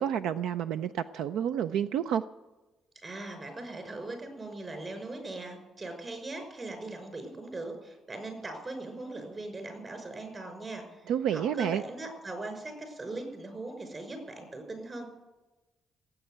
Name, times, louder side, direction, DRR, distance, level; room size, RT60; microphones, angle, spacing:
voice 1, 0.0-2.2 11.1-11.8, right 9 dB, 85° right, 12 dB, 0.4 m, -29 dB
voice 2, 3.0-11.0 11.3-15.1, right 2 dB, 35° right, 6 dB, 5.7 m, -40 dB
18.0 x 8.8 x 9.1 m, 1.1 s
cardioid pair, 90°, 0 cm